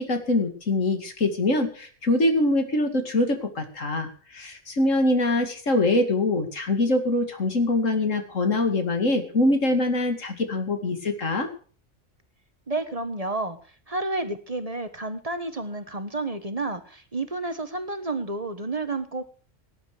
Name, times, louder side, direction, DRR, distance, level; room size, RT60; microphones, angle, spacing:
voice 1, 0.0-11.5, left 2 dB, 85° left, 6 dB, 2.8 m, -24 dB
voice 2, 12.7-13.6 13.9-19.2, right 2 dB, 30° right, 9 dB, 1.3 m, -30 dB
18.5 x 10.0 x 5.0 m, 0.41 s
omnidirectional pair, 1.3 m